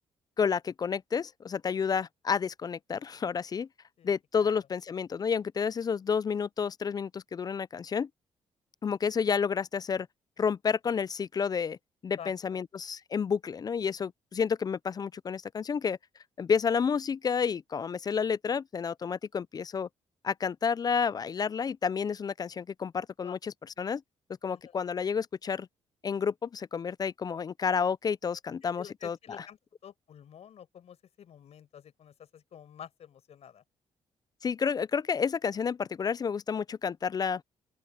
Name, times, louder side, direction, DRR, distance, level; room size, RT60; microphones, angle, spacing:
voice 1, 0.4-3.7 4.0-8.1 8.8-10.1 10.4-11.8 12.0-16.0 16.4-19.9 20.2-24.0 24.4-25.7 26.0-29.2 34.4-37.4, left 6 dB, 35° left, 0.3 m, -30 dB
voice 2, 12.2-12.6 23.2-23.3 24.5-24.7 28.8-33.6, left 9 dB, 65° left, 5.0 m, -49 dB
open air
cardioid pair, 90°, 12 cm